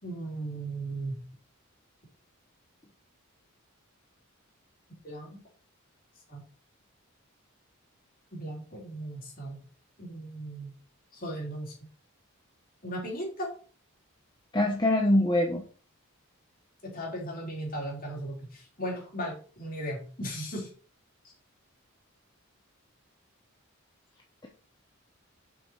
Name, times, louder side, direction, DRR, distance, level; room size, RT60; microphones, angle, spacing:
voice 1, 0.0-1.2 5.0-5.4 6.3-6.4 8.3-9.6 10.0-10.7 11.1-11.7 12.8-13.5 16.8-20.7, right 1 dB, 40° left, -2 dB, 3.7 m, -37 dB
voice 2, 14.5-15.6, left 1 dB, 20° left, 0 dB, 1.1 m, -23 dB
7.6 x 6.2 x 4.7 m, 0.40 s
head